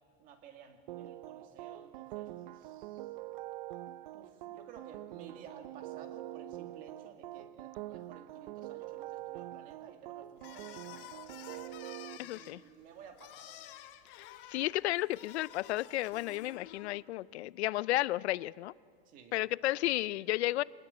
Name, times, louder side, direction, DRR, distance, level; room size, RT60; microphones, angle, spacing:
voice 1, 0.2-3.1 4.1-11.7 12.2-13.7 19.1-19.3, right 7 dB, 25° right, 5 dB, 2.2 m, -54 dB
sound 1, 0.9-12.2, right 15 dB, 45° right, 0.6 m, -45 dB
sound 2, 10.4-17.0, left 12 dB, 55° left, 1.7 m, -51 dB
voice 2, 12.2-12.6 14.1-18.7 19.3-20.6, left 16 dB, 75° left, 21 dB, 0.6 m, -33 dB
25.5 x 19.0 x 9.8 m, 2.1 s
supercardioid pair, 175°, 33 cm